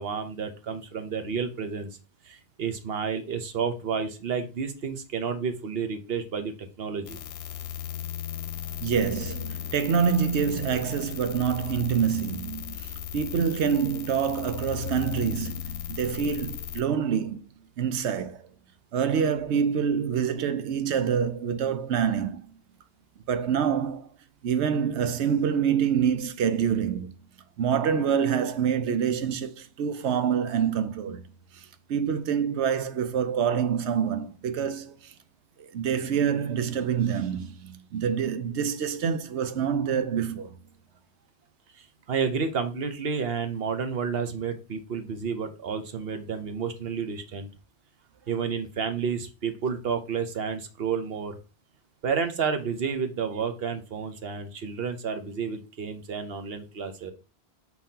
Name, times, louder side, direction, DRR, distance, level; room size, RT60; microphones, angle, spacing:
voice 1, 0.0-1.9 2.2-7.2 41.8-47.5 48.3-51.4 52.0-57.1, right 6 dB, 65° right, 1.1 m, -30 dB
sound 1, 7.1-16.8, left 10 dB, 70° left, 0.8 m, -36 dB
voice 2, 8.8-17.4 17.8-18.5 18.9-22.5 23.3-24.1 24.4-27.1 27.6-31.2 31.5-35.1 35.6-40.6, right 7 dB, 85° right, 1.0 m, -26 dB
6.2 x 5.5 x 2.8 m
omnidirectional pair, 1.1 m